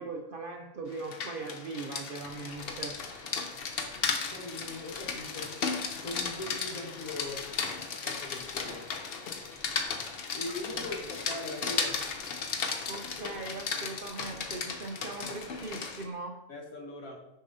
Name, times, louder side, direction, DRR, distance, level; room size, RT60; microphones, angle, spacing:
voice 1, 0.0-3.0 10.8-10.9 12.9-16.4, right 3 dB, 65° right, 2 dB, 0.5 m, -40 dB
Rain, 0.9-16.0, left 5 dB, 55° left, 0.7 m, -35 dB
sound 1, 2.2-16.1, right 1 dB, 15° right, 1.9 m, -55 dB
voice 2, 4.1-5.6 6.0-7.5 8.0-8.8 10.3-12.1 13.2-13.6 16.5-17.2, left 2 dB, 90° left, 1 dB, 1.5 m, -41 dB
6.4 x 5.5 x 2.7 m, 0.88 s
omnidirectional pair, 1.4 m